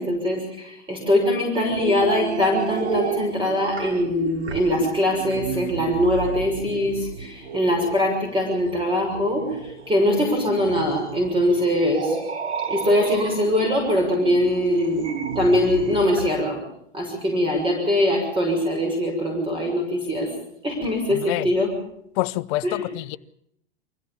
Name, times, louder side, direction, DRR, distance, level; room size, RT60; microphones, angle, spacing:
voice 1, 0.0-12.2 12.7-16.6 16.9-20.3 20.6-21.7 22.6-22.9, left 1 dB, 15° right, 6.5 m, -22 dB
sound 1, 1.7-16.3, right 5 dB, 75° right, 4.7 m, -32 dB
voice 2, 21.1-21.5 22.2-23.2, left 18 dB, 45° left, 0.8 m, -27 dB
25.0 x 16.0 x 7.3 m
hypercardioid pair, 110°, 34 cm